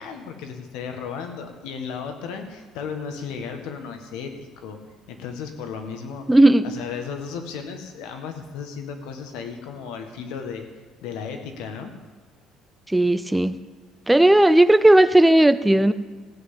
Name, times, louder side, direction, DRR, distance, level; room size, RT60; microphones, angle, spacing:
voice 1, 0.0-4.8 5.1-6.2 6.6-10.7 11.0-11.9, left 6 dB, 85° left, 5 dB, 1.7 m, -34 dB
voice 2, 6.3-6.7 12.9-13.5 14.1-15.9, right 1 dB, 5° right, 12 dB, 0.6 m, -15 dB
15.5 x 5.8 x 8.4 m, 1.4 s
cardioid pair, 120°, 0 cm